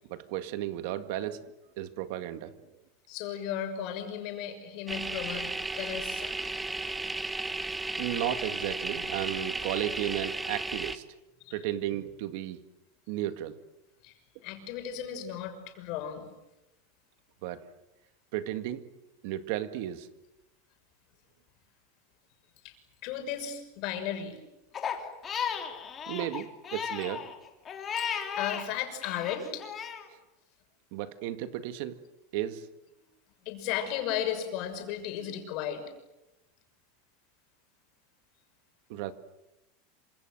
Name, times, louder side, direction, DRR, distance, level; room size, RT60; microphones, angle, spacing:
voice 1, 0.1-2.7 8.0-11.0 11.5-12.6 13.1-13.6 17.4-17.6 18.3-18.9 19.2-20.1 26.1-27.3 30.9-32.0 32.3-32.7 38.9-39.1, right 12 dB, 60° right, 10 dB, 1.9 m, -34 dB
voice 2, 3.1-6.4 11.4-11.5 14.0-16.3 22.6-22.7 23.0-24.4 27.9-29.7 33.4-35.8, left 9 dB, 50° left, 6 dB, 6.2 m, -35 dB
sound 1, 4.9-11.0, right 2 dB, 5° right, 1.2 m, -34 dB
Crying sobbing, 24.7-28.7 29.0-30.0, left 7 dB, 20° left, 3.3 m, -35 dB
27.5 x 26.5 x 7.9 m, 0.97 s
supercardioid pair, 155°, 0 cm